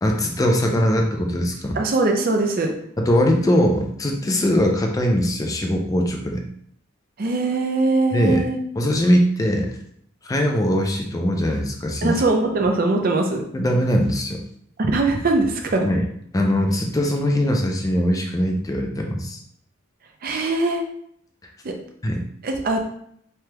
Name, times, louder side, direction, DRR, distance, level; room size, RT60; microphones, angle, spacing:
voice 1, 0.0-1.8 3.0-6.4 8.1-8.4 8.8-9.8 10.2-12.2 13.5-14.4 15.8-16.1 16.3-19.4 22.0-22.2, equal, 15° left, 2 dB, 0.4 m, -21 dB
voice 2, 1.7-2.7 7.2-8.6 12.0-13.4 14.8-15.9 20.2-20.8 21.6-21.7 22.4-22.8, right 2 dB, 45° right, 3 dB, 0.5 m, -21 dB
3.2 x 2.3 x 2.9 m, 0.68 s
head